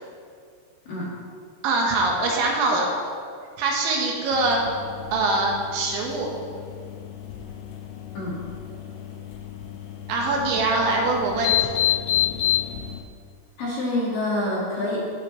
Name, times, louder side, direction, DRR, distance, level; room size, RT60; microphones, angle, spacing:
voice 1, 1.6-2.9 3.6-4.6 5.1-6.3 10.1-11.7, right 2 dB, 75° right, -1 dB, 3.4 m, -23 dB
sound 1, 4.3-13.0, left 12 dB, 75° left, 3.0 m, -30 dB
voice 2, 13.6-15.2, left 1 dB, 55° left, -6 dB, 3.0 m, -27 dB
17.0 x 8.2 x 3.1 m, 2.2 s
omnidirectional pair, 5.7 m